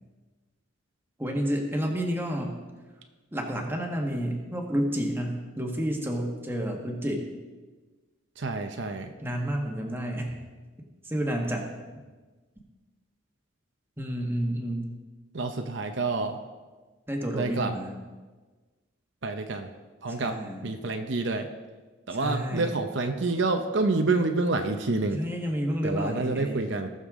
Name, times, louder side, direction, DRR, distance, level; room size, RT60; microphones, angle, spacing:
voice 1, 1.2-2.6 3.3-7.2 9.2-10.4 11.0-11.7 14.0-14.9 17.1-17.9 20.2-20.6 22.1-22.8 25.1-26.7, equal, 10° right, 1 dB, 1.3 m, -30 dB
voice 2, 8.4-9.1 15.3-16.4 17.3-17.7 19.2-19.7 20.0-20.4 20.6-21.5 22.1-25.2 25.8-26.9, right 3 dB, 60° right, 5 dB, 0.7 m, -28 dB
19.5 x 6.7 x 3.7 m, 1.3 s
head